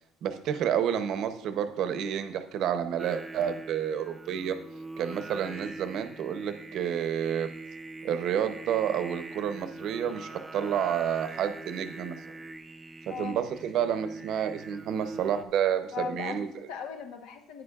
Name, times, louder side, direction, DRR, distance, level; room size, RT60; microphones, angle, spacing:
voice 1, 0.2-4.5 5.0-7.5 8.0-12.2 13.1-16.5, right 9 dB, 55° right, 9 dB, 0.7 m, -30 dB
Singing, 3.0-15.4, right 2 dB, 10° right, 0.4 m, -43 dB
voice 2, 15.9-17.6, left 5 dB, 85° left, 6 dB, 1.1 m, -38 dB
9.8 x 9.5 x 2.4 m, 0.76 s
cardioid pair, 160°, 0 cm